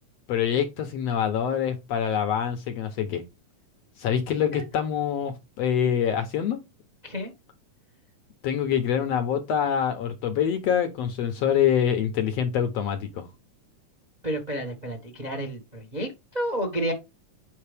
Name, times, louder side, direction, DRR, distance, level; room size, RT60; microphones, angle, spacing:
voice 1, 0.3-3.2 4.0-6.6 8.4-13.3, left 8 dB, 70° left, 1.7 m, -25 dB
voice 2, 14.2-16.9, right 1 dB, 30° right, 0.7 m, -31 dB
8.5 x 5.3 x 3.4 m
omnidirectional pair, 3.7 m